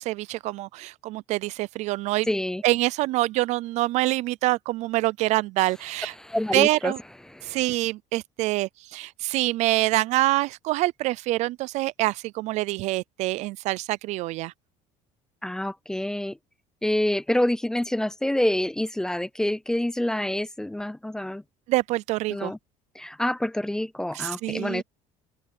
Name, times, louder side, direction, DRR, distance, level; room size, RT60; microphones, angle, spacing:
voice 1, 0.0-2.3 2.6-6.1 6.5-7.0 7.4-14.5 21.7-22.5 24.1-24.8, right 18 dB, 50° right, 0.4 m, -25 dB
voice 2, 2.3-2.6 6.2-6.9 7.3-7.6 15.4-16.4 16.8-21.4 22.3-22.6 22.9-24.8, left 1 dB, 5° left, 0.5 m, -27 dB
open air
cardioid pair, 165°, 15 cm